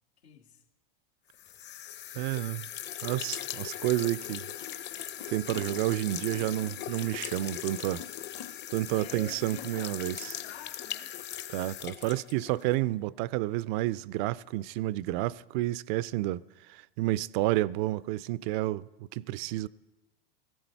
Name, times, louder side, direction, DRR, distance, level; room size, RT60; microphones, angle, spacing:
voice 1, 0.2-0.6 8.9-11.1, left 8 dB, 85° left, 1.9 m, -49 dB
sound 1, 1.4-12.8, left 11 dB, 35° left, 0.8 m, -39 dB
voice 2, 2.1-2.7 3.0-4.5 5.3-8.0 8.7-10.3 11.5-16.4 16.7-19.7, right 16 dB, 50° right, 0.5 m, -30 dB
17.0 x 14.5 x 4.5 m
hypercardioid pair, 105°, 31 cm